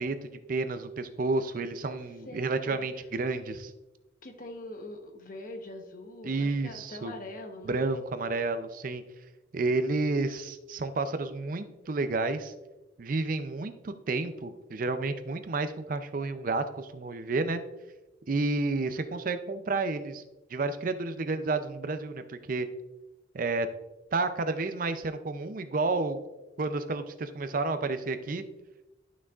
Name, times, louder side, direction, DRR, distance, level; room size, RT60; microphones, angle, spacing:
voice 1, 0.0-3.7 6.2-7.1 7.7-9.0 9.5-12.5 13.0-17.6 18.3-20.2 20.5-22.7 23.3-23.7 24.1-26.2 26.6-28.4, right 3 dB, 45° right, 10 dB, 0.4 m, -30 dB
voice 2, 2.2-2.9 4.2-7.9, left 1 dB, 45° left, 4 dB, 1.0 m, -43 dB
11.5 x 6.1 x 2.4 m, 1.1 s
head